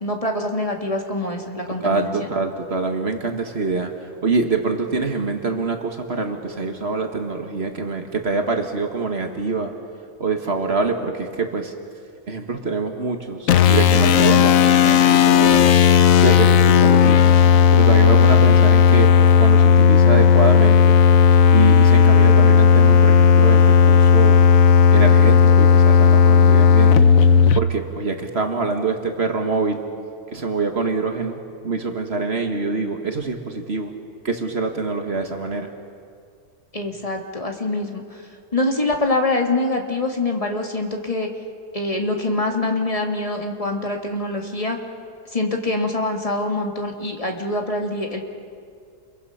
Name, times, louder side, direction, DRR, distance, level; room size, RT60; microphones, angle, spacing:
voice 1, 0.0-2.3 36.7-38.2 38.5-41.3 41.7-44.8 45.3-48.2, left 2 dB, 20° left, 2 dB, 2.1 m, -24 dB
voice 2, 1.8-3.9 4.2-9.7 10.2-11.7 12.3-15.8 16.2-17.2 17.7-21.0 21.5-24.4 24.9-27.0 27.6-29.9 30.3-33.9 34.3-35.7, right 4 dB, 45° right, 5 dB, 1.7 m, -25 dB
sound 1, 13.5-27.6, left 6 dB, 65° left, 1.1 m, -13 dB
29.5 x 22.5 x 5.7 m, 2.3 s
omnidirectional pair, 1.6 m